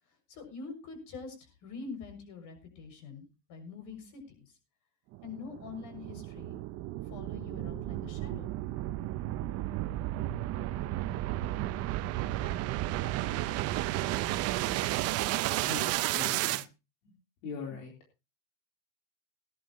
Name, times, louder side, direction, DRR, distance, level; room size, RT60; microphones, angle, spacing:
voice 1, 0.3-4.5 5.2-6.6 7.0-8.5, left 5 dB, 50° left, 5 dB, 6.8 m, -45 dB
sound 1, 5.1-16.6, right 15 dB, 35° right, 0.7 m, -33 dB
voice 2, 15.6-16.6 17.4-17.9, left 5 dB, 70° left, 0 dB, 4.0 m, -40 dB
20.5 x 11.0 x 3.0 m, 0.29 s
supercardioid pair, 140°, 41 cm